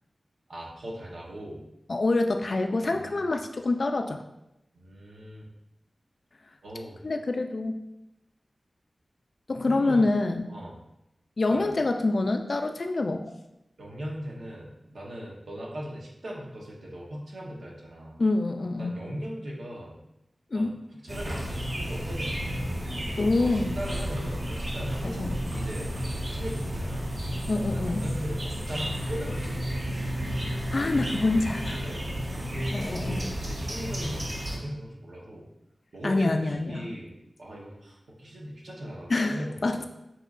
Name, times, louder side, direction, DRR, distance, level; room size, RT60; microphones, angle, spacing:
voice 1, 0.5-1.6 2.9-3.3 4.7-5.5 6.6-7.1 9.7-10.1 10.5-10.8 11.5-11.7 13.8-18.2 18.8-20.0 20.5-22.7 23.4-25.9 26.3-27.1 27.7-29.8 31.2-31.3 31.7-32.1 32.4-35.5 35.9-37.1 37.4-39.8, equal, 90° right, -3 dB, 1.0 m, -39 dB
voice 2, 1.9-4.2 7.0-7.8 9.5-10.5 11.4-13.2 18.2-18.9 20.5-20.7 23.2-23.7 25.0-25.3 27.5-28.0 30.5-31.8 32.7-33.3 36.0-36.9 39.1-39.8, left 2 dB, 65° left, 6 dB, 0.4 m, -26 dB
sound 1, 21.1-34.6, equal, 55° right, 1.4 m, -32 dB
7.4 x 2.8 x 2.5 m, 0.88 s
cardioid pair, 45°, 0 cm